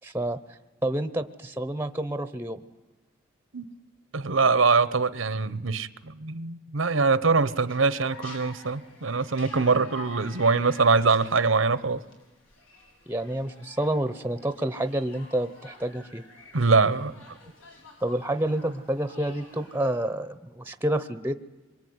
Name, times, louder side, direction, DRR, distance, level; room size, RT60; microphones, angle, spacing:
voice 1, 0.0-0.4 0.8-2.6 13.1-16.2 18.0-21.4, right 1 dB, 10° right, 13 dB, 0.8 m, -29 dB
voice 2, 4.1-12.0 16.5-17.1, right 4 dB, 80° right, 17 dB, 1.0 m, -23 dB
sound 1, 7.4-20.0, left 2 dB, 85° left, 6.5 m, -49 dB
25.5 x 23.0 x 9.6 m, 1.2 s
head